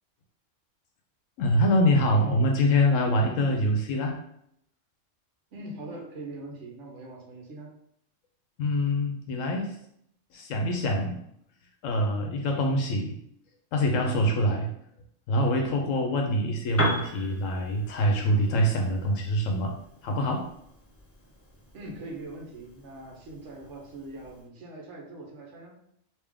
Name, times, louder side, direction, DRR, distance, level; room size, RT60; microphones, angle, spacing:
voice 1, 1.4-4.2 8.6-9.8 10.3-11.2 11.8-13.2 13.7-14.7 15.3-19.7 20.0-20.5, equal, 80° left, 2 dB, 1.0 m, -25 dB
voice 2, 5.5-7.7 21.7-25.7, right 2 dB, 70° right, -1 dB, 1.2 m, -42 dB
Piano, 16.7-24.5, left 1 dB, 20° left, 0.4 m, -38 dB
3.3 x 2.9 x 3.5 m, 0.72 s
omnidirectional pair, 1.3 m